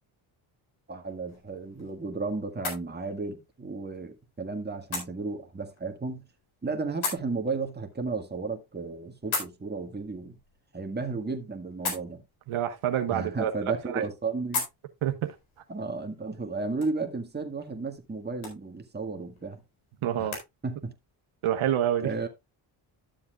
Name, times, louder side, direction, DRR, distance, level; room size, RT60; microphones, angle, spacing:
voice 1, 0.9-6.2 6.6-10.4 10.7-12.2 13.1-14.6 15.7-19.6 20.2-20.3 20.6-20.9 22.0-22.3, right 4 dB, 20° right, 1.8 m, -33 dB
sound 1, 1.0-20.5, left 4 dB, 75° left, 4.3 m, -41 dB
voice 2, 12.5-14.0 15.0-15.4 20.0-20.4 21.4-22.1, right 10 dB, 75° right, 1.2 m, -28 dB
12.5 x 7.2 x 2.4 m
cardioid pair, 75°, 49 cm